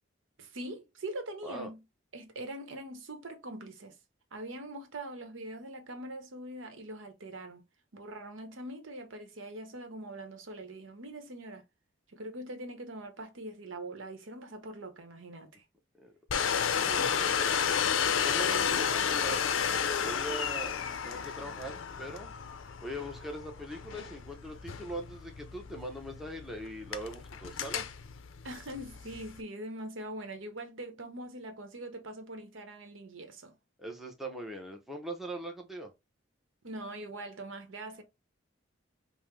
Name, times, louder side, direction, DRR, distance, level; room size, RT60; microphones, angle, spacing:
voice 1, 0.4-1.8 2.1-3.9 4.3-7.6 7.9-11.6 12.1-15.6 28.4-33.5 36.6-38.0, right 1 dB, 75° right, 0.9 m, -42 dB
Domestic sounds home sounds, 16.3-29.4, left 7 dB, 80° left, 0.5 m, -32 dB
voice 2, 16.8-17.4 17.7-19.5 19.9-22.3 22.8-27.9 33.8-35.9, right 1 dB, ahead, 0.6 m, -41 dB
5.5 x 2.0 x 3.1 m
head